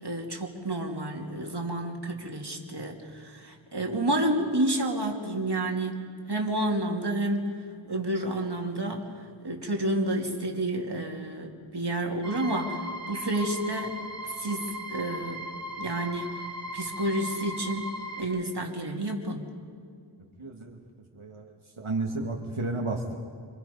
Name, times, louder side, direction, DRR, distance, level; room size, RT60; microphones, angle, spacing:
voice 1, 0.0-7.5 7.9-9.1 9.4-14.0 14.4-15.5 15.8-16.4 16.7-17.9 18.2-19.5, right 1 dB, 55° right, 1 dB, 2.8 m, -30 dB
sound 1, 12.2-18.2, equal, 55° left, 3.1 m, -38 dB
voice 2, 20.4-20.7 21.2-21.5 21.8-23.1, right 2 dB, 80° right, 0 dB, 1.9 m, -32 dB
27.0 x 26.0 x 5.4 m, 2.2 s
wide cardioid pair, 50°, 48 cm